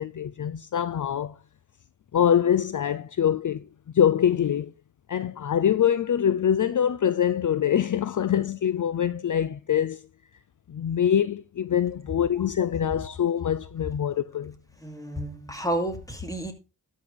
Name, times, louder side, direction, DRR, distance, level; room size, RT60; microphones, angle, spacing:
voice 1, 0.0-1.4 2.1-3.7 3.9-4.7 5.1-10.1 10.7-14.5, left 9 dB, 50° left, 0.5 m, -24 dB
voice 2, 14.8-16.5, right 1 dB, 10° left, 2.7 m, -31 dB
13.0 x 5.6 x 4.7 m
cardioid pair, 70°, 39 cm